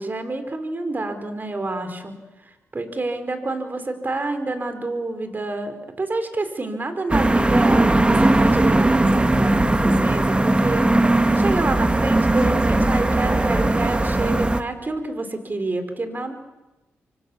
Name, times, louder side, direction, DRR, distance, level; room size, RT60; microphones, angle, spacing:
voice 1, 0.0-2.2 2.4-16.3, right 2 dB, 35° right, 8 dB, 4.7 m, -28 dB
sound 1, 7.1-14.6, right 2 dB, 20° right, 1.7 m, -18 dB
26.0 x 24.5 x 7.3 m, 1.0 s
supercardioid pair, 50°, 5 cm